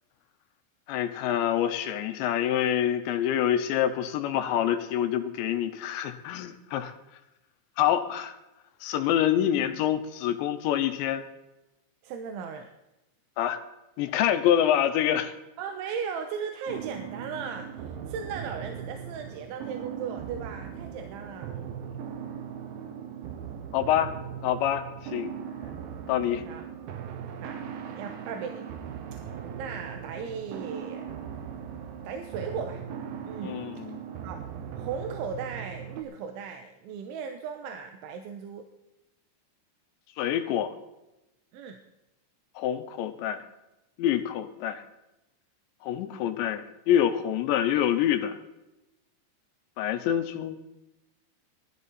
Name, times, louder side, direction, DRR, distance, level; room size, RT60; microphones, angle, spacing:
voice 1, 0.9-6.9 7.8-8.4 8.8-11.3 13.4-13.6 14.0-15.3 23.7-24.2 24.4-25.3 26.1-26.4 33.4-34.0 40.2-40.8 42.6-43.5 44.0-44.8 45.8-48.4 49.8-50.6, left 10 dB, 80° left, 8 dB, 3.0 m, -26 dB
voice 2, 12.0-12.7 15.6-21.5 26.4-26.7 27.4-27.6 27.9-28.7 29.1-31.1 32.0-32.8 33.2-33.6 34.2-34.4 34.8-38.7 41.5-41.8, right 6 dB, 90° right, 6 dB, 3.3 m, -37 dB
sound 1, 16.7-36.0, right 8 dB, 70° right, 2.5 m, -39 dB
19.0 x 13.5 x 4.1 m, 0.94 s
omnidirectional pair, 5.3 m